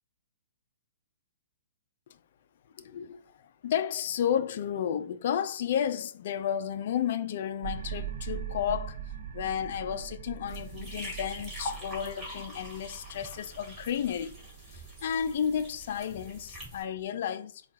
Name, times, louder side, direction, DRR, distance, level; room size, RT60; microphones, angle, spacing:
voice 1, 2.8-9.0 9.3-14.3 14.7-17.6, left 9 dB, 55° left, 0.4 m, -32 dB
sound 1, 7.6-17.0, right 9 dB, 50° right, 1.1 m, -42 dB
sound 2, 10.5-16.8, left 1 dB, 10° right, 1.7 m, -44 dB
4.4 x 2.3 x 2.8 m
hypercardioid pair, 135°, 0 cm